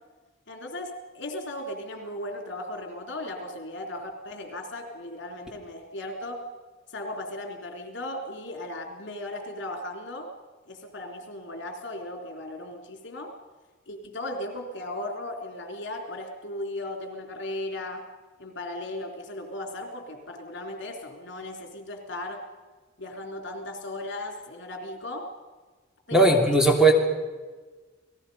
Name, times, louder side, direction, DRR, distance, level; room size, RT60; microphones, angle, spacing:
voice 1, 0.5-6.4 6.9-10.3 10.7-13.3 13.9-18.0 18.4-22.4 23.0-25.3 26.1-26.5, left 1 dB, 65° left, 3 dB, 3.7 m, -36 dB
voice 2, 26.1-26.9, right 2 dB, 5° right, 1 dB, 3.0 m, -18 dB
29.5 x 19.0 x 5.6 m, 1.3 s
head